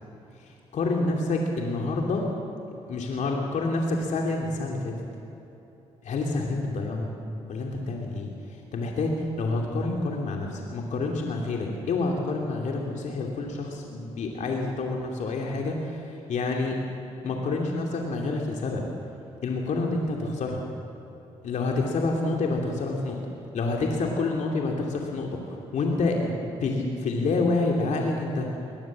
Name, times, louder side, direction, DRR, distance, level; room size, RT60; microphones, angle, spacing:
voice 1, 0.4-2.3 2.9-5.0 6.0-7.2 7.5-16.8 17.2-18.8 19.4-20.6 21.4-23.2 23.5-28.5, left 3 dB, 65° left, 0 dB, 2.8 m, -28 dB
21.5 x 19.5 x 7.5 m, 3.0 s
supercardioid pair, 65°, 13 cm